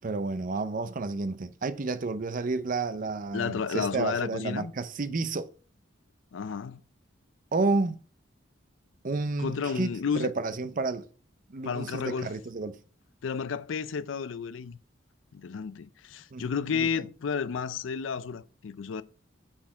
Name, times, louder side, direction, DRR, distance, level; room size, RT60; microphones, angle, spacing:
voice 1, 0.0-5.5 7.5-8.0 9.0-11.1 11.5-12.8 16.3-16.4 16.7-17.1, right 3 dB, 45° right, 0.5 m, -31 dB
voice 2, 3.3-4.7 6.3-6.8 9.4-10.3 11.6-12.3 13.2-14.8 15.3-19.0, left 6 dB, 75° left, 0.4 m, -32 dB
5.8 x 4.3 x 6.0 m
head